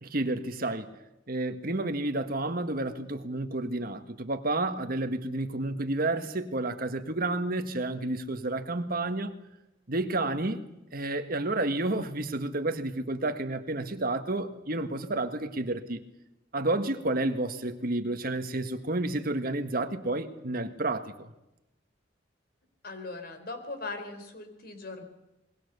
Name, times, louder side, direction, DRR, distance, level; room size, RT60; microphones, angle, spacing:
voice 1, 0.0-0.9 1.3-9.3 9.9-10.6 10.9-16.0 16.5-21.3, right 2 dB, 50° right, 1.7 m, -30 dB
voice 2, 22.8-25.0, left 3 dB, 55° left, 3.8 m, -39 dB
25.5 x 21.5 x 6.9 m
head